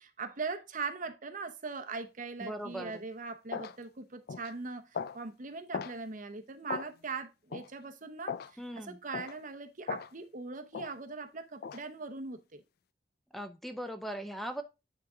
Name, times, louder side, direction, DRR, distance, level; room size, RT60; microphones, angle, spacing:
voice 1, 0.0-12.6, right 4 dB, 45° right, 0.9 m, -40 dB
voice 2, 2.4-3.0 8.6-9.0 13.3-14.6, right 1 dB, ahead, 0.6 m, -39 dB
sound 1, 2.8-2.9 3.5-3.8 4.3-4.5 4.9-5.2 5.7-6.0 6.7-6.9 7.5-7.7 8.3-8.5 9.1-9.4 9.9-10.1 10.7-10.9 11.6-11.8, left 6 dB, 60° left, 0.4 m, -38 dB
9.6 x 3.6 x 3.7 m
head